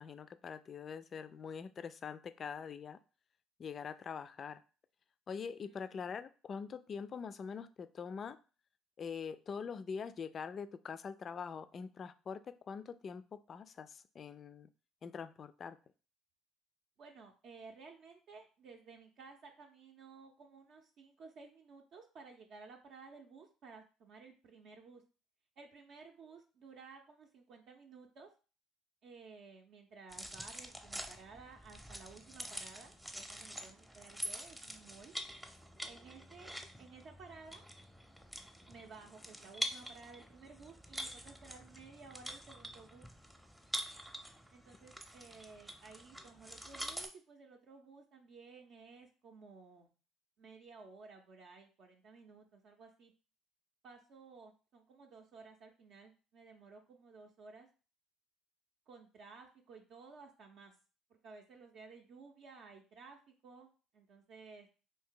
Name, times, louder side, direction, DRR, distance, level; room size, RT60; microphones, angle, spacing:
voice 1, 0.0-3.0 3.6-4.6 5.3-8.4 9.0-14.7 15.0-15.8, left 6 dB, 45° left, 12 dB, 0.3 m, -44 dB
voice 2, 5.6-6.1 17.0-25.0 25.6-28.3 29.0-35.1 35.8-37.6 38.7-43.1 44.5-49.9 50.4-53.1 53.8-57.7 58.9-60.7 61.1-64.7, right 4 dB, 60° right, 1 dB, 0.6 m, -55 dB
sound 1, 30.1-47.1, equal, 5° right, 0.6 m, -46 dB
2.7 x 2.7 x 3.7 m, 0.35 s
hypercardioid pair, 60°, 0 cm